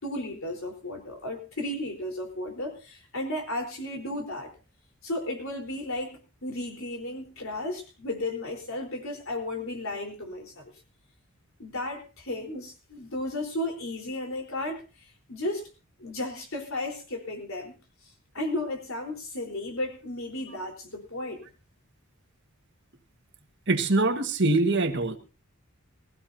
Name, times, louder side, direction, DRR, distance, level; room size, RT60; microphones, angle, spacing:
voice 1, 0.0-4.5 5.0-10.7 11.6-15.7 16.0-17.8 18.3-21.5, left 1 dB, 65° left, 3 dB, 4.2 m, -34 dB
voice 2, 23.7-25.2, right 2 dB, 55° right, 6 dB, 1.7 m, -23 dB
21.5 x 15.5 x 2.8 m, 0.33 s
head